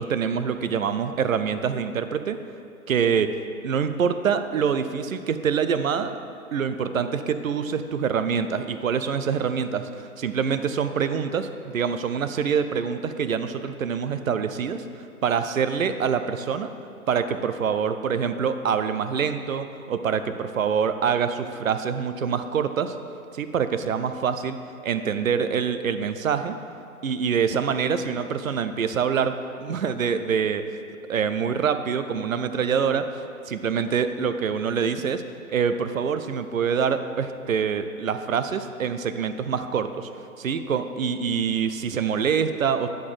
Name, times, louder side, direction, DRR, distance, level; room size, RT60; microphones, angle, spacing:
voice 1, 0.0-2.4 2.9-3.3 3.6-6.1 6.5-14.8 15.2-16.7 17.1-22.9 23.3-24.6 24.8-26.6 27.0-30.6 31.1-33.1 33.5-35.2 35.5-40.1 40.4-42.9, right 6 dB, 65° right, 10 dB, 0.6 m, -25 dB
9.7 x 4.3 x 4.8 m, 2.5 s
figure-of-eight pair, 125°, 43 cm